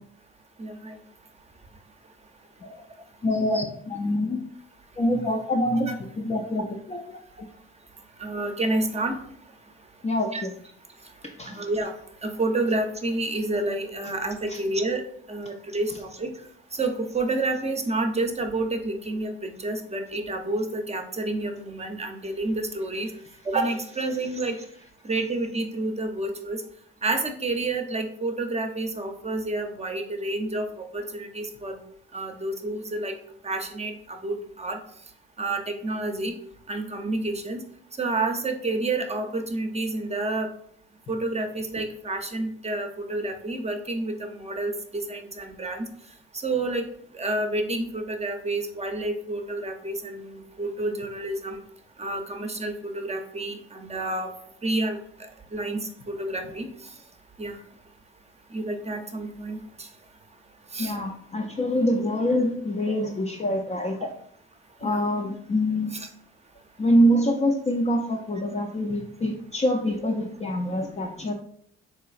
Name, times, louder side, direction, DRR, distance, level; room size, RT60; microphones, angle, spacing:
voice 1, 0.6-1.0 3.5-3.6 5.9-6.0 8.2-9.2 10.3-10.4 11.4-11.9 12.2-15.0 15.3-16.3 16.8-23.1 23.5-24.6 25.0-26.6 27.0-31.8 32.1-33.2 33.4-34.8 35.4-36.3 36.7-37.6 38.0-40.5 41.1-45.8 46.4-46.8 47.1-51.6 52.0-54.3 54.6-55.0 55.5-56.7 57.4-57.5 58.5-59.9 60.7-60.9 64.8-65.0 65.9-66.1, right 2 dB, 20° right, 5 dB, 0.7 m, -29 dB
voice 2, 3.2-3.7 3.9-4.4 5.0-5.9 6.2-7.2 10.0-10.5 11.4-11.6 14.5-14.6 60.8-64.1 64.8-65.9 66.8-71.3, equal, 25° left, 1 dB, 0.5 m, -25 dB
3.9 x 2.9 x 2.4 m, 0.65 s
hypercardioid pair, 45°, 29 cm